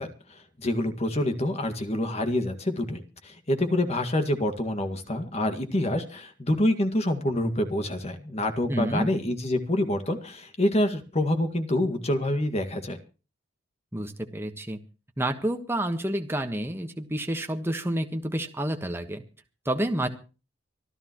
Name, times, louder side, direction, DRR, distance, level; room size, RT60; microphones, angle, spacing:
voice 1, 0.0-13.0, left 1 dB, 35° left, 7 dB, 2.0 m, -27 dB
voice 2, 8.7-9.1 13.9-14.8 15.2-19.2 19.6-20.1, right 1 dB, 10° right, 5 dB, 1.4 m, -29 dB
25.5 x 12.5 x 3.1 m, 0.34 s
head